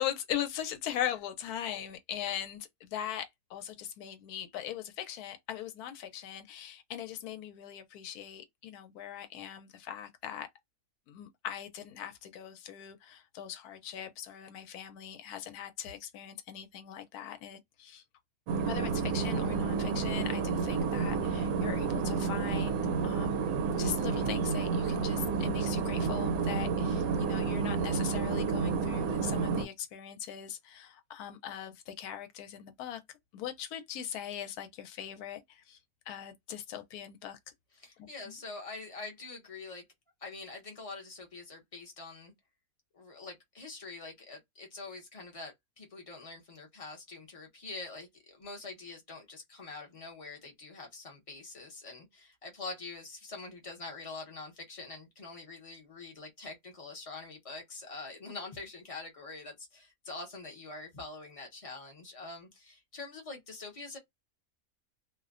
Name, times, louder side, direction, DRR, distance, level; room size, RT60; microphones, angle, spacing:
voice 1, 0.0-10.5 11.1-18.0 18.6-23.5 23.8-33.0 33.3-35.8 36.1-37.4 38.0-38.4, left 10 dB, 90° left, 1.1 m, -40 dB
sound 1, 18.5-29.6, right 5 dB, 75° right, 1.0 m, -30 dB
voice 2, 37.8-39.8 40.2-42.3 42.9-64.0, left 3 dB, 35° left, 0.6 m, -45 dB
2.5 x 2.1 x 2.4 m
omnidirectional pair, 1.6 m